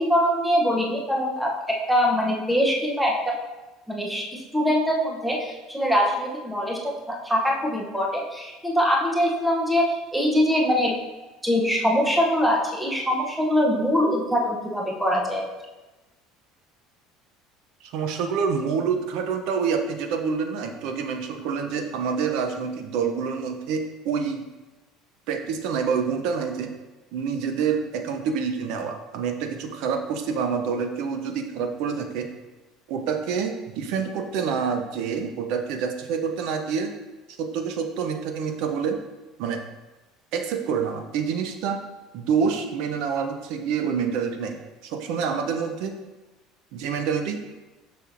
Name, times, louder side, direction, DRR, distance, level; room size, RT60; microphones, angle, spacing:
voice 1, 0.0-3.4 3.9-4.3 4.5-10.9 11.4-15.5, equal, 5° right, -1 dB, 0.6 m, -23 dB
voice 2, 17.8-24.5 25.3-26.7 27.1-32.3 32.9-36.9 37.4-39.0 39.4-39.6 40.3-41.8 42.1-44.6 44.8-46.0 46.7-47.4, right 6 dB, 55° right, 6 dB, 0.5 m, -27 dB
6.7 x 5.9 x 2.5 m, 1.1 s
cardioid pair, 175°, 0 cm